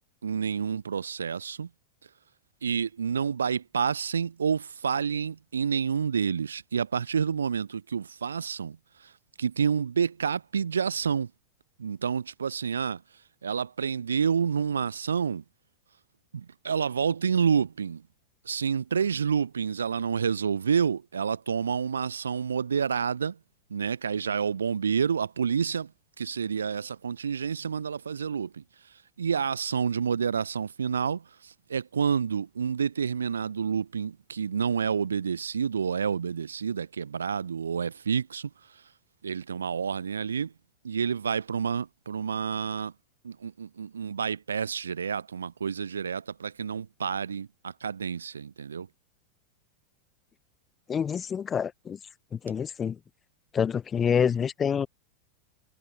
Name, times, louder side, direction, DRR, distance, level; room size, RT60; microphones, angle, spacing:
voice 1, 0.2-1.7 2.6-8.8 9.4-11.3 11.8-13.0 13.4-15.4 16.3-18.0 18.4-23.4 23.7-25.9 26.2-28.6 29.2-38.5 39.2-40.5 40.8-42.9 43.2-48.9, right 6 dB, 70° right, 4.9 m, -29 dB
voice 2, 50.9-52.0 52.3-53.0 53.5-54.9, left 7 dB, 20° left, 6.1 m, -27 dB
figure-of-eight pair, 90°, 0 cm